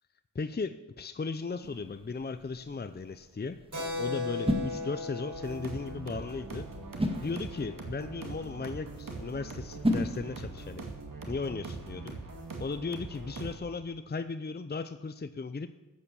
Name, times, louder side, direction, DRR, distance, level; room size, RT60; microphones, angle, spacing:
voice 1, 0.3-3.6 4.0-6.7 7.2-10.8 11.3-12.2 12.6-15.7, left 4 dB, 30° left, 11 dB, 0.6 m, -36 dB
sound 1, 1.6-10.9, equal, 15° right, 1.9 m, -37 dB
Keyboard (musical), 3.7-7.8, left 3 dB, 60° right, 4.5 m, -38 dB
sound 2, 5.3-13.6, right 3 dB, 85° right, 2.2 m, -42 dB
13.5 x 8.4 x 7.1 m, 1.2 s
wide cardioid pair, 75°, 32 cm